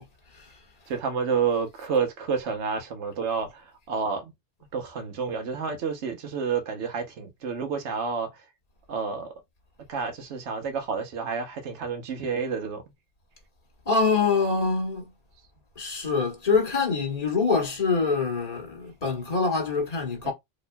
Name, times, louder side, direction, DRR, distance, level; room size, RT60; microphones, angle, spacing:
voice 1, 0.9-4.3 4.7-8.4 8.9-9.3 9.9-12.8 20.2-20.3, right 5 dB, 65° right, 1.1 m, -29 dB
voice 2, 13.9-15.1 15.8-20.3, left 4 dB, 35° left, 1.3 m, -25 dB
4.2 x 3.0 x 2.2 m
omnidirectional pair, 1.3 m